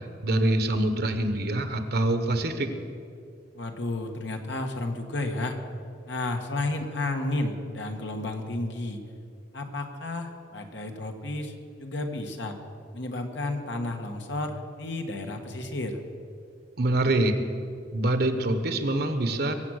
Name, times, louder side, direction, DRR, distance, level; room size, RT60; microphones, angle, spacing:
voice 1, 0.2-2.7 16.8-17.4 17.9-19.5, right 1 dB, 60° right, 8 dB, 1.2 m, -25 dB
voice 2, 3.5-5.6 6.1-9.0 9.5-11.5 11.8-12.5 12.9-16.0, left 2 dB, 70° left, 4 dB, 1.4 m, -32 dB
22.5 x 7.7 x 6.4 m, 2.4 s
head